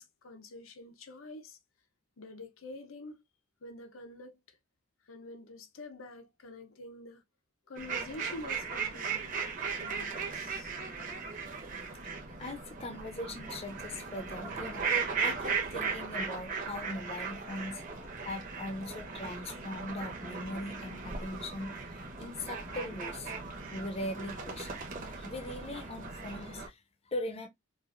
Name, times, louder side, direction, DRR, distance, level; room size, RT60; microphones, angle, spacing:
voice 1, 0.0-1.6 2.2-3.2 3.6-4.6 5.1-7.2 7.7-9.3 9.7-10.8, left 2 dB, 85° left, 0.8 m, -47 dB
sound 1, 7.8-26.7, right 5 dB, 40° right, 1.0 m, -37 dB
voice 2, 12.4-14.9 15.2-17.8 18.2-21.7 22.2-23.3 23.7-24.9 25.2-27.5, left 1 dB, 30° left, 0.6 m, -40 dB
4.7 x 2.5 x 2.5 m
head